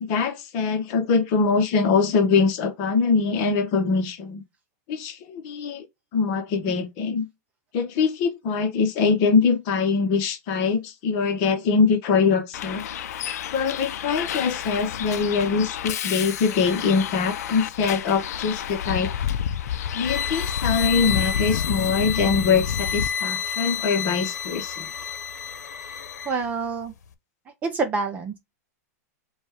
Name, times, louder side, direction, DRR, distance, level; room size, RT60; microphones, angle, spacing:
voice 1, 0.0-4.4 4.9-5.8 6.1-7.3 7.7-12.8 13.5-19.1 19.9-24.9, left 5 dB, 35° left, 0.9 m, -23 dB
Bus, 12.5-23.1, left 9 dB, 70° left, 0.5 m, -30 dB
sound 1, 20.0-26.4, left 7 dB, 85° left, 0.9 m, -30 dB
voice 2, 26.3-26.9 27.6-28.4, right 4 dB, 15° right, 0.5 m, -27 dB
5.1 x 2.4 x 3.4 m
supercardioid pair, 160°, 9 cm